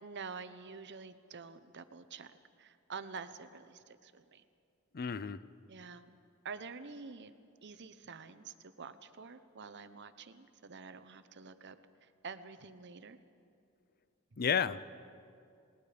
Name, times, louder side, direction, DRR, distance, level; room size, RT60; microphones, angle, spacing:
voice 1, 0.0-4.4 5.7-6.2 6.4-7.4 7.6-11.8 12.0-13.2, right 5 dB, 55° right, 11 dB, 0.9 m, -48 dB
voice 2, 4.9-5.4 14.4-14.8, left 7 dB, 45° left, 16 dB, 0.5 m, -32 dB
28.5 x 20.0 x 5.1 m, 2.5 s
head